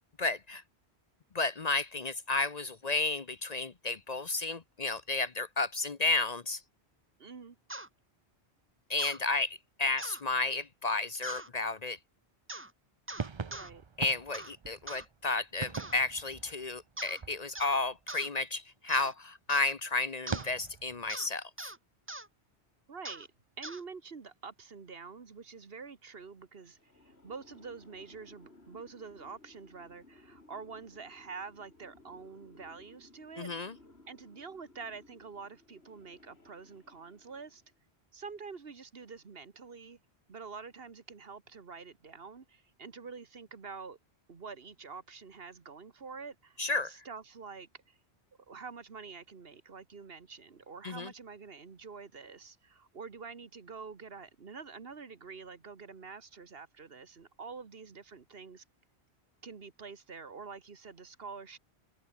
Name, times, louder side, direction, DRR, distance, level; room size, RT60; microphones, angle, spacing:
voice 1, 0.2-0.6 1.3-6.6 8.9-12.0 14.0-21.7 33.4-33.7 46.6-46.9 50.8-51.1, left 3 dB, 40° left, 0.9 m, -32 dB
voice 2, 7.2-7.6 13.5-13.8 22.9-23.3 23.6-33.7 34.1-37.6 38.1-40.0 40.3-44.0 44.3-48.0 48.4-58.6 59.4-61.6, right 5 dB, 65° right, 1.7 m, -47 dB
sound 1, 7.7-7.9 9.0-9.2 10.0-10.2 11.2-11.5 12.5-12.7 13.1-13.7 14.3-14.5 14.9-15.1 15.7-16.0 17.0-17.2 17.5-17.8 18.1-18.3 18.9-19.1 19.5-19.7 20.3-20.5 21.1-21.3 21.6-21.8 22.1-22.3 23.0-23.3 23.6-23.8, right 1 dB, 10° right, 1.1 m, -42 dB
sound 2, 13.1-17.9 20.3-21.1, right 5 dB, 30° right, 0.6 m, -42 dB
sound 3, 26.6-37.8, left 2 dB, 70° left, 4.3 m, -60 dB
omnidirectional pair, 1.1 m